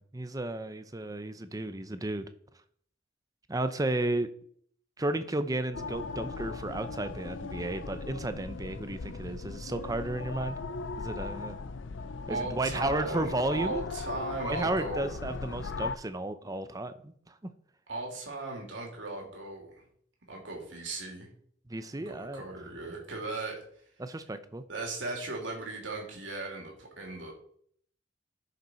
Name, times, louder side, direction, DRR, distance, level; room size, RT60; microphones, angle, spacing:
voice 1, 0.0-2.3 3.5-4.3 5.0-10.6 11.0-11.6 12.3-13.8 14.4-17.3 21.7-22.4 24.0-24.6, right 2 dB, 20° right, 11 dB, 0.7 m, -33 dB
sound 1, 5.7-15.9, left 4 dB, 85° left, 0.6 m, -38 dB
voice 2, 12.3-15.1 17.9-19.8 20.3-21.3 22.0-23.6 24.7-27.3, right 2 dB, 85° right, 0 dB, 2.8 m, -37 dB
11.5 x 6.7 x 4.4 m, 0.63 s
head